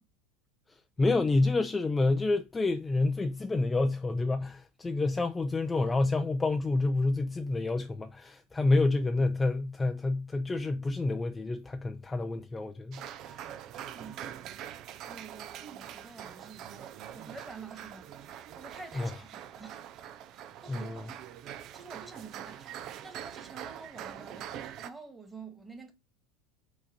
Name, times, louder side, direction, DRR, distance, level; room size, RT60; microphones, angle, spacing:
voice 1, 1.0-13.4 19.0-19.1 20.7-21.0, left 2 dB, 15° left, 0.5 m, -28 dB
sound 1, 12.9-24.9, right 10 dB, 50° right, 0.5 m, -44 dB
voice 2, 13.9-14.3 15.1-18.1 18.6-19.8 20.4-24.6 24.8-25.9, right 4 dB, 15° right, 1.7 m, -49 dB
4.8 x 4.0 x 5.2 m
hypercardioid pair, 85°, 0 cm